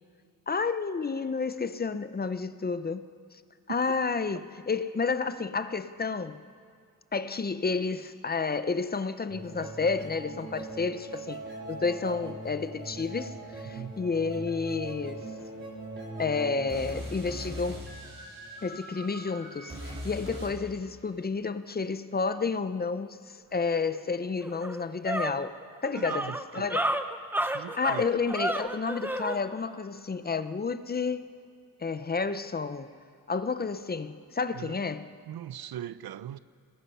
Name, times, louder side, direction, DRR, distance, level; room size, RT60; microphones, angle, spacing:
voice 1, 0.5-3.4 3.7-6.4 7.1-11.4 11.7-15.2 16.2-17.9 18.6-25.5 25.8-26.9 27.8-31.3 31.8-32.9 33.3-35.1, left 4 dB, 25° left, 0.6 m, -31 dB
sound 1, 9.3-20.5, right 1 dB, 35° right, 4.1 m, -40 dB
sound 2, 23.9-24.0 24.4-29.4, right 1 dB, 5° right, 0.8 m, -31 dB
voice 2, 26.0-26.8 27.5-28.1 34.5-34.8 35.2-36.4, right 11 dB, 90° right, 0.7 m, -40 dB
27.0 x 19.5 x 5.5 m
wide cardioid pair, 165°, 36 cm